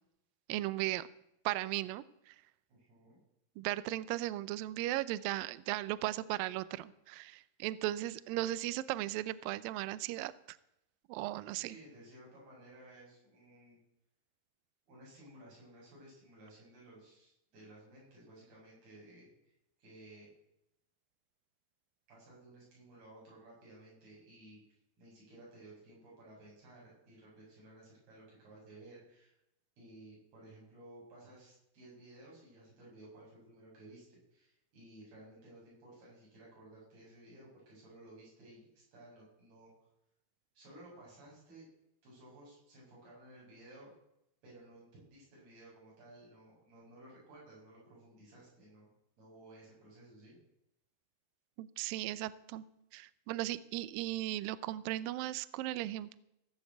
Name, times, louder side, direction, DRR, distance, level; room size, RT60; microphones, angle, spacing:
voice 1, 0.5-1.1 1.5-2.4 3.6-10.3 11.1-11.8 51.6-52.6 52.9-56.2, right 15 dB, 90° right, 17 dB, 2.0 m, -37 dB
voice 2, 2.7-3.2 11.5-13.8 14.9-19.5 19.8-20.3 22.1-29.3 29.8-39.7 40.6-41.7 42.0-43.9 44.4-48.9 49.2-50.4, right 1 dB, 65° right, -5 dB, 9.1 m, -56 dB
17.5 x 7.3 x 8.0 m, 0.83 s
omnidirectional pair, 4.8 m